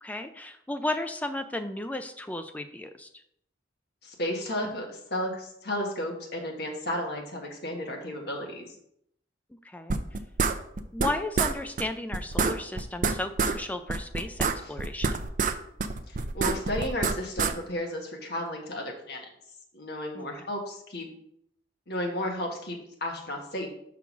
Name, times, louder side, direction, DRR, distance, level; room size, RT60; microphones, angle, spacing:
voice 1, 0.0-3.1 9.6-10.0 10.9-15.1 20.1-20.3, left 2 dB, 10° left, 8 dB, 0.3 m, -34 dB
voice 2, 4.0-8.7 14.6-14.7 16.1-19.3 19.7-21.1 21.9-23.7, left 1 dB, 60° left, 1 dB, 1.5 m, -33 dB
sound 1, 9.9-11.1 11.4-11.5 11.8-11.9 12.1-13.6 13.9-15.5 15.8-17.5, right 4 dB, 45° right, 0.5 m, -26 dB
5.8 x 3.8 x 6.0 m, 0.73 s
head